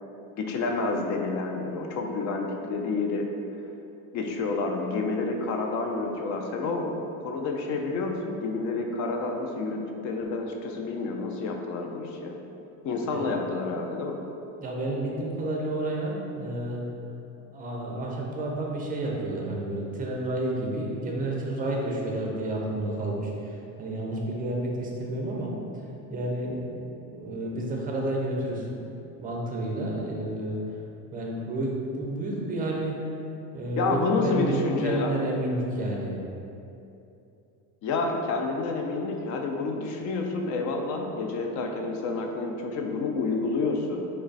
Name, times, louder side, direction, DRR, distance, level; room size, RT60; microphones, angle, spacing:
voice 1, 0.2-3.3 4.1-12.4 12.8-14.2 33.8-35.1 37.8-44.1, left 3 dB, 50° left, 2 dB, 0.4 m, -29 dB
voice 2, 14.6-16.8 17.5-25.5 26.1-28.9 29.2-30.6 31.1-33.0 33.5-36.1, right 1 dB, 20° right, -2 dB, 0.5 m, -30 dB
3.1 x 2.2 x 3.9 m, 2.7 s
cardioid pair, 125°, 39 cm